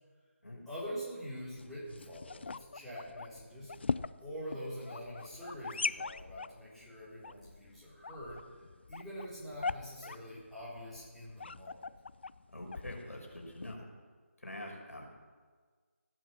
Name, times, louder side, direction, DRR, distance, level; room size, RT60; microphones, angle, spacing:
voice 1, 0.7-3.7 4.2-8.6 8.9-11.8, equal, ahead, -13 dB, 4.1 m, -45 dB
sound 1, 1.4-13.7, left 4 dB, 50° left, 0.4 m, -41 dB
voice 2, 12.5-13.8 14.4-15.1, left 1 dB, 85° left, 1 dB, 5.1 m, -45 dB
16.5 x 9.4 x 7.5 m, 1.5 s
figure-of-eight pair, 160°, 8 cm